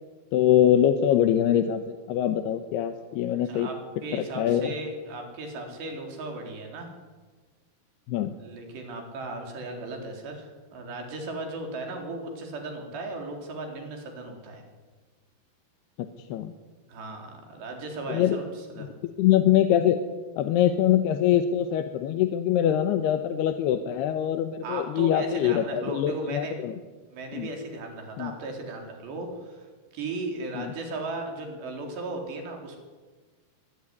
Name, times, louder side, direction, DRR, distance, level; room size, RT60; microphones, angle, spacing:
voice 1, 0.3-3.7 4.1-4.7 8.1-8.3 16.0-16.5 18.1-18.4 19.0-20.0 20.4-26.7 27.3-27.5 28.2-28.4 30.5-30.7, left 10 dB, 80° left, 8 dB, 3.1 m, -24 dB
voice 2, 3.5-6.9 8.4-14.6 16.9-18.9 24.6-26.6 27.1-29.7 29.9-32.8, right 2 dB, 85° right, 2 dB, 6.3 m, -36 dB
23.5 x 20.5 x 9.8 m, 1.4 s
omnidirectional pair, 4.8 m